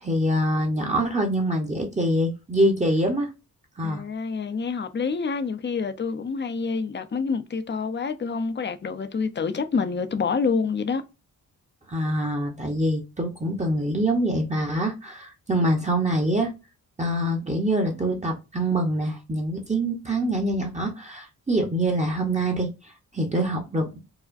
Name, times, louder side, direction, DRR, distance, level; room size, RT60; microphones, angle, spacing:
voice 1, 0.0-3.3 3.8-4.0 11.9-16.5 17.0-24.0, right 1 dB, 20° right, 0.8 m, -25 dB
voice 2, 3.8-11.0, left 5 dB, 30° left, 0.5 m, -27 dB
4.8 x 2.1 x 2.5 m
wide cardioid pair, 100°, 35 cm